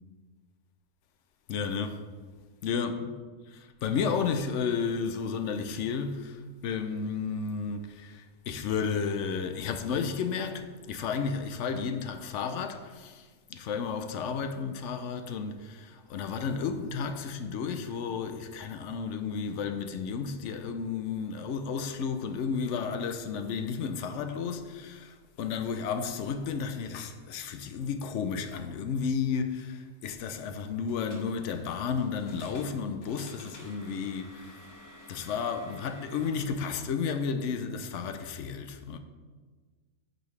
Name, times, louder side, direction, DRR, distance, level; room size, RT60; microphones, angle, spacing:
voice 1, 1.5-2.0 2.6-2.9 3.8-34.6 35.1-39.0, left 6 dB, 65° left, 0.7 m, -32 dB
sound 1, 30.9-36.5, left 1 dB, 50° left, 1.5 m, -51 dB
8.9 x 5.4 x 3.2 m
omnidirectional pair, 1.6 m